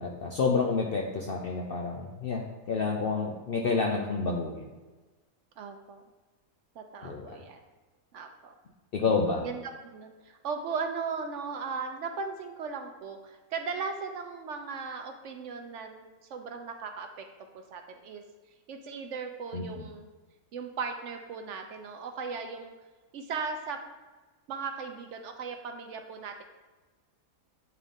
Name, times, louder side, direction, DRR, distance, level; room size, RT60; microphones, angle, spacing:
voice 1, 0.0-4.7 7.0-7.4 8.9-9.4 19.5-19.9, left 4 dB, 65° left, 1 dB, 0.6 m, -29 dB
voice 2, 5.6-6.0 6.8-7.6 8.1-8.5 9.4-16.0 16.3-17.3 17.5-18.2 18.7-20.1 20.5-22.7 23.1-23.8 24.5-26.4, right 5 dB, 65° right, 5 dB, 0.8 m, -37 dB
8.2 x 3.8 x 3.5 m, 1.3 s
omnidirectional pair, 1.5 m